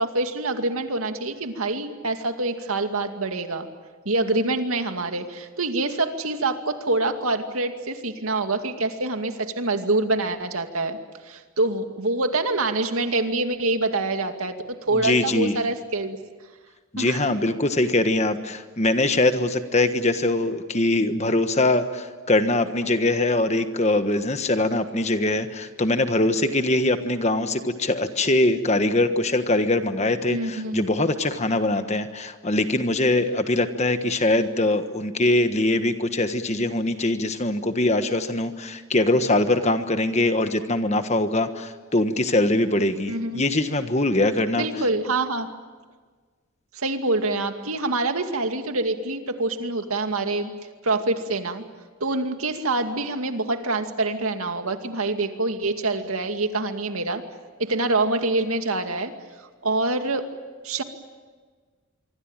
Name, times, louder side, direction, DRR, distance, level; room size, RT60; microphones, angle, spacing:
voice 1, 0.0-3.7 4.1-11.0 11.3-16.2 17.0-17.3 30.3-30.8 43.1-43.4 44.5-45.5 46.7-50.5 50.8-51.6 52.0-57.2 57.6-59.1 59.6-60.3 60.6-60.8, right 2 dB, 75° right, 6 dB, 2.3 m, -25 dB
voice 2, 14.9-15.6 16.9-44.6, left 2 dB, 30° left, 9 dB, 1.4 m, -22 dB
25.5 x 25.0 x 9.0 m, 1.4 s
head